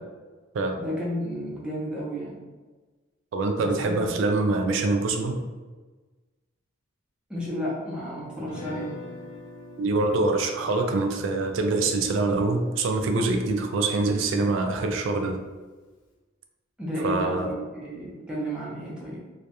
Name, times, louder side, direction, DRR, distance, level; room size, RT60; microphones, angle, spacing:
voice 1, 0.8-2.4 3.6-4.1 7.3-8.9 16.8-19.2, equal, 5° right, -6 dB, 0.6 m, -32 dB
voice 2, 3.3-5.4 9.8-15.4 17.0-17.5, right 3 dB, 70° right, 4 dB, 0.3 m, -25 dB
Guitar, 8.4-14.5, left 3 dB, 65° left, 0.5 m, -45 dB
2.3 x 2.1 x 2.8 m, 1.3 s
head